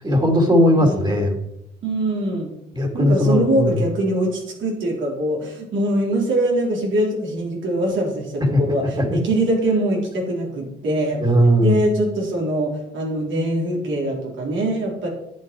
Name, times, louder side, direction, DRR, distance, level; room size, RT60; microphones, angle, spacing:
voice 1, 0.0-1.3 2.7-3.8 8.4-8.6 9.0-9.2 11.2-11.8, equal, 20° right, 2 dB, 2.9 m, -17 dB
voice 2, 0.7-1.1 1.8-2.5 2.9-11.2 11.6-15.1, right 1 dB, 75° right, -2 dB, 4.3 m, -23 dB
10.5 x 8.8 x 4.7 m, 0.81 s
cardioid pair, 90°, 20 cm